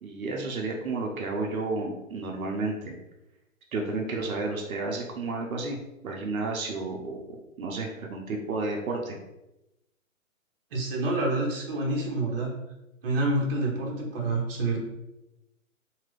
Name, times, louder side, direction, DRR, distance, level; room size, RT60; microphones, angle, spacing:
voice 1, 0.0-2.9 3.7-5.8 6.0-7.2 7.6-9.2, right 3 dB, 80° right, 0 dB, 0.7 m, -31 dB
voice 2, 10.7-12.5 13.0-14.8, right 2 dB, 40° right, -2 dB, 0.9 m, -27 dB
2.9 x 2.4 x 3.2 m, 0.93 s
hypercardioid pair, 145°, 42 cm